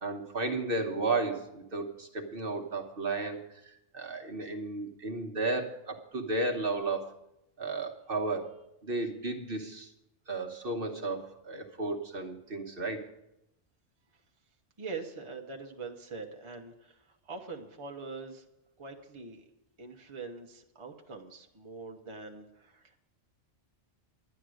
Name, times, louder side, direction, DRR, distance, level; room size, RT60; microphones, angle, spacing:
voice 1, 0.0-3.4 3.6-7.1 7.6-8.5 8.8-9.9 10.3-13.1, right 3 dB, 50° right, 3 dB, 1.3 m, -33 dB
voice 2, 14.8-18.4 18.8-19.5 19.8-23.0, right 4 dB, 25° right, 2 dB, 1.0 m, -43 dB
10.5 x 10.5 x 6.4 m, 0.87 s
omnidirectional pair, 1.2 m